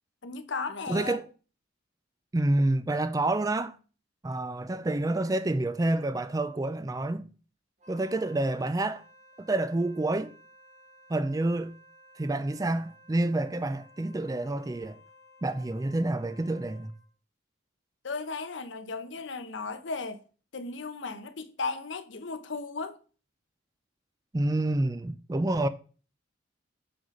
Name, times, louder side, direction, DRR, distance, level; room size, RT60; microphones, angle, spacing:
voice 1, 0.2-1.2 18.0-20.2 20.5-23.0, left 4 dB, 65° left, 0.8 m, -35 dB
voice 2, 0.9-1.3 2.3-3.8 4.2-7.2 7.9-9.0 9.4-10.3 11.1-11.7 12.2-15.0 15.4-16.9 24.3-25.7, right 2 dB, 15° right, 0.3 m, -28 dB
Wind instrument woodwind instrument, 7.8-17.1, left 1 dB, 35° right, 1.6 m, -56 dB
7.8 x 4.1 x 5.1 m
head